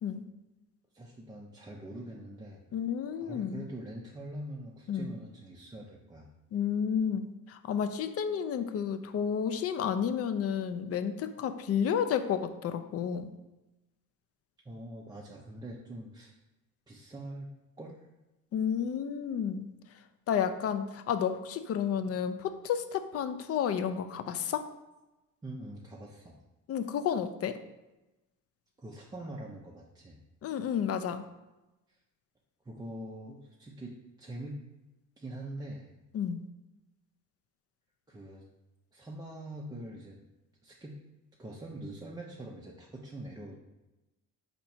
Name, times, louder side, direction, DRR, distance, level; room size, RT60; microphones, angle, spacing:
voice 1, 0.9-2.6 3.1-6.3 14.6-16.3 16.9-17.5 17.8-18.0 25.4-26.4 28.8-30.2 31.9-32.0 32.6-34.6 35.2-35.9 38.1-38.4 38.9-40.2 40.6-41.0 41.4-43.6, right 1 dB, 10° right, -2 dB, 0.4 m, -44 dB
voice 2, 2.7-3.7 4.9-5.1 6.5-13.3 18.5-19.7 20.3-24.7 26.7-27.6 30.4-31.2 36.1-36.4, left 8 dB, 45° left, 10 dB, 0.4 m, -31 dB
4.3 x 2.8 x 4.3 m, 1.0 s
cardioid pair, 105°, 34 cm